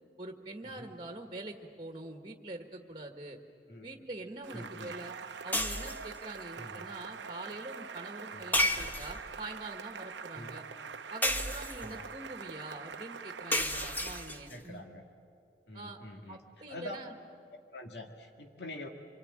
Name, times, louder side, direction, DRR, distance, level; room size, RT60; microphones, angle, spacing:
voice 1, 0.2-3.4 3.8-5.1 5.4-10.6 11.1-14.8 15.7-16.0 16.3-17.1, right 2 dB, 25° right, 4 dB, 1.7 m, -44 dB
voice 2, 3.7-4.1 4.5-4.9 6.6-6.9 8.3-8.5 10.3-10.6 11.8-12.1 14.5-15.0 15.7-16.4 16.7-17.0 17.5-18.9, left 1 dB, 70° left, 3 dB, 2.1 m, -45 dB
Cheering / Applause, 4.4-14.5, right 5 dB, 80° right, 0.8 m, -44 dB
sound 1, 5.5-6.2 8.5-9.4 11.2-12.0 13.5-14.6, left 1 dB, 10° left, 1.0 m, -32 dB
27.0 x 23.5 x 8.9 m, 2.4 s
head